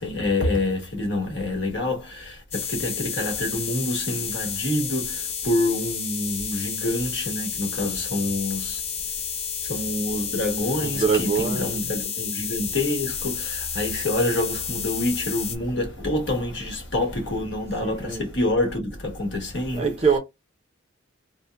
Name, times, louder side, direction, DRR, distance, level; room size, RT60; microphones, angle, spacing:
voice 1, 0.0-8.8 9.6-20.0, left 1 dB, 65° left, 1.1 m, -27 dB
sound 1, 2.5-15.6, left 7 dB, 30° left, 0.4 m, -31 dB
voice 2, 10.8-11.8 17.8-18.3 19.7-20.2, right 5 dB, 30° right, 0.6 m, -24 dB
2.7 x 2.1 x 3.3 m
head